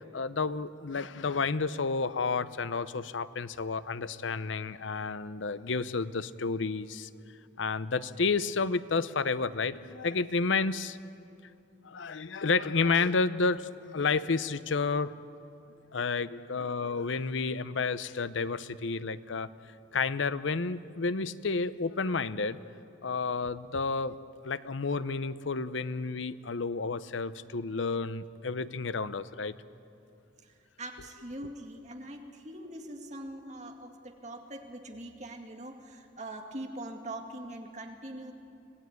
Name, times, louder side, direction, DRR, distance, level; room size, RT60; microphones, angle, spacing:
voice 1, 0.1-7.1 7.6-11.0 11.8-15.2 15.9-19.5 19.9-22.6 23.0-24.2 24.4-29.5, left 4 dB, 80° left, 15 dB, 0.7 m, -31 dB
voice 2, 30.4-38.3, right 1 dB, 40° right, 3 dB, 2.1 m, -42 dB
25.0 x 17.5 x 9.4 m, 2.6 s
head